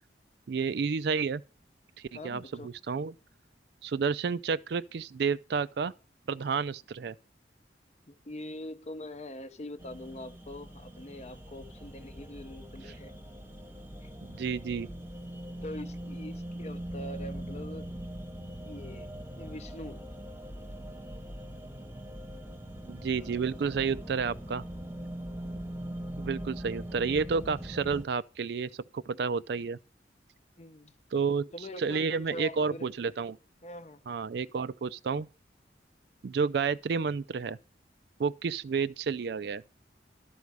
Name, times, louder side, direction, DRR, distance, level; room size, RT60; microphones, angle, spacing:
voice 1, 0.5-1.4 2.0-3.1 3.8-5.9 6.3-7.2 14.3-14.9 22.9-24.6 26.2-29.8 31.1-31.5 31.8-33.4 34.1-35.3 36.2-37.6 38.2-39.6, right 5 dB, 60° right, 0.4 m, -30 dB
voice 2, 2.1-2.7 8.1-13.1 14.0-14.1 15.6-17.9 18.6-20.1 30.6-30.9 31.5-32.9 33.6-34.0, left 1 dB, 35° left, 0.6 m, -43 dB
sound 1, 9.8-28.1, right 1 dB, 15° right, 0.9 m, -41 dB
12.5 x 5.3 x 4.7 m
head